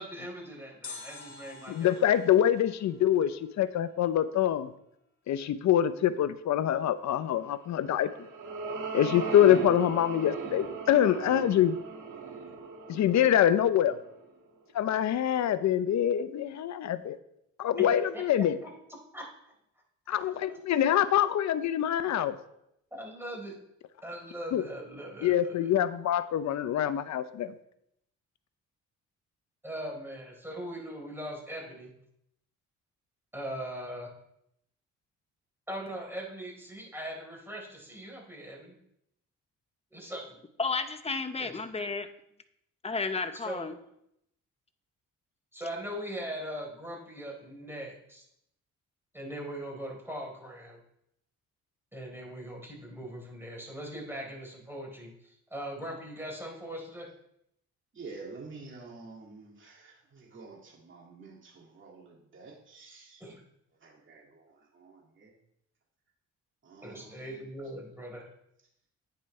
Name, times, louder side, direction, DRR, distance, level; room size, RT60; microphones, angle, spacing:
voice 1, 0.0-1.9 17.8-18.7 19.1-19.2 20.1-20.6 22.9-23.5 24.0-25.7 29.6-31.9 33.3-34.1 35.7-38.8 39.9-40.4 41.4-41.6 43.4-43.7 45.5-48.2 49.1-50.8 51.9-57.1 63.2-63.4 66.8-68.3, right 1 dB, 10° right, -1 dB, 4.0 m, -40 dB
sound 1, 0.8-3.9 4.2-4.3, left 4 dB, 40° left, 2.3 m, -48 dB
voice 2, 1.7-4.7 5.3-8.1 8.9-11.8 12.9-14.0 14.7-17.2 17.6-18.6 20.1-22.4 24.5-24.6 25.2-27.5, left 10 dB, 65° left, 12 dB, 0.8 m, -25 dB
sound 2, 7.8-14.3, right 5 dB, 80° right, 2.1 m, -38 dB
voice 3, 40.6-42.1 42.8-43.7, left 4 dB, 20° left, 8 dB, 0.9 m, -32 dB
voice 4, 57.9-63.3 63.8-65.3 66.6-67.5, right 4 dB, 40° right, -2 dB, 2.4 m, -49 dB
10.5 x 9.2 x 3.3 m, 0.77 s
cardioid pair, 90°, 30 cm